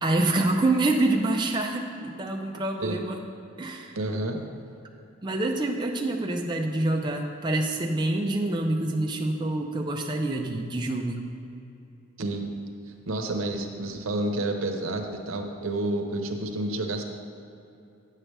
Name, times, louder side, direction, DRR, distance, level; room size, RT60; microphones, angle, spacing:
voice 1, 0.0-3.2 3.6-4.0 5.2-11.2, right 2 dB, 20° right, 1 dB, 0.5 m, -26 dB
voice 2, 3.9-4.4 12.2-12.5 13.1-17.0, right 2 dB, 85° right, 4 dB, 0.8 m, -29 dB
9.8 x 7.5 x 3.3 m, 2.7 s
head